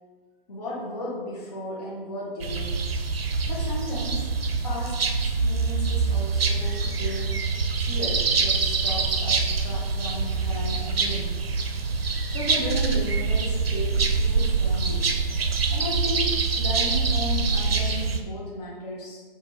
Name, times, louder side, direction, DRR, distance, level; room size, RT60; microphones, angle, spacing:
voice 1, 0.5-2.9 3.5-4.3 4.6-7.4 7.7-11.4 12.3-15.1 15.7-19.2, left 1 dB, 40° left, -6 dB, 0.8 m, -35 dB
sound 1, 2.4-18.2, right 4 dB, 80° right, 0.5 m, -25 dB
4.2 x 2.5 x 2.8 m, 1.5 s
figure-of-eight pair, 135°, 30 cm